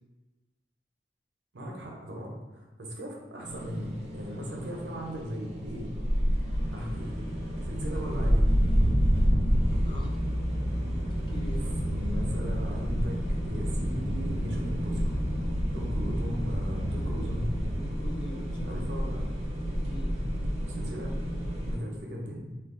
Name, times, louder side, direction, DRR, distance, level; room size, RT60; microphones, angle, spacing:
voice 1, 1.5-5.9 6.7-7.2 7.7-8.5 11.9-15.2 15.7-17.4 18.7-19.2 20.7-21.1 21.7-22.5, equal, 85° right, -1 dB, 0.6 m, -38 dB
sound 1, 3.4-21.8, equal, 40° right, 0.5 m, -29 dB
sound 2, 6.3-17.7, equal, 65° left, 1.1 m, -35 dB
voice 2, 9.7-10.2 10.7-12.0 17.8-18.8 19.8-20.2, left 1 dB, 30° left, 0 dB, 0.4 m, -43 dB
2.3 x 2.2 x 3.6 m, 1.1 s
head